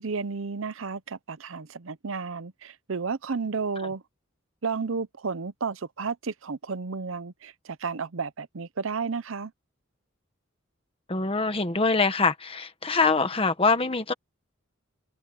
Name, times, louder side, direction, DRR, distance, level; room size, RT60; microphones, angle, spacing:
voice 1, 0.0-4.0 4.6-9.5, right 5 dB, 75° right, 0.7 m, -32 dB
voice 2, 11.1-14.1, left 4 dB, 25° left, 1.4 m, -24 dB
head